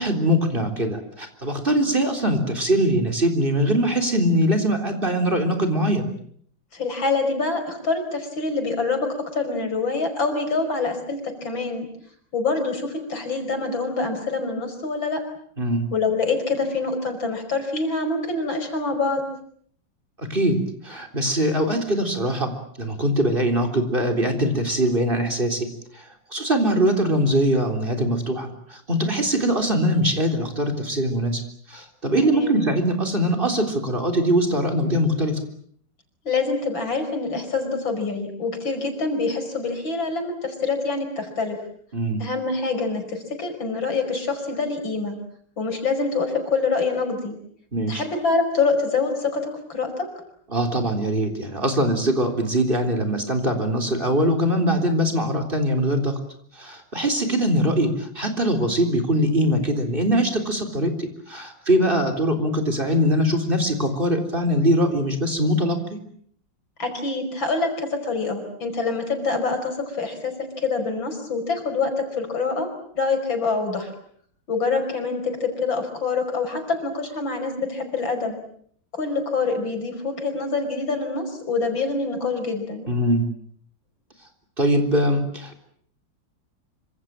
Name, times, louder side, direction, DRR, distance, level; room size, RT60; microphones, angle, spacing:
voice 1, 0.0-6.1 15.6-15.9 20.2-22.5 22.8-25.7 25.9-31.4 31.7-35.4 41.9-42.2 47.7-48.0 50.5-56.1 56.5-66.0 82.9-83.3 84.6-85.6, equal, 25° right, 7 dB, 3.9 m, -22 dB
voice 2, 6.7-11.9 12.3-15.2 15.9-19.3 32.2-32.6 36.2-41.6 42.2-45.2 45.6-47.4 47.9-50.1 66.8-72.7 73.0-73.9 74.5-78.4 78.9-82.9, left 4 dB, 80° left, 6 dB, 6.0 m, -25 dB
26.5 x 26.0 x 7.6 m, 0.63 s
omnidirectional pair, 2.1 m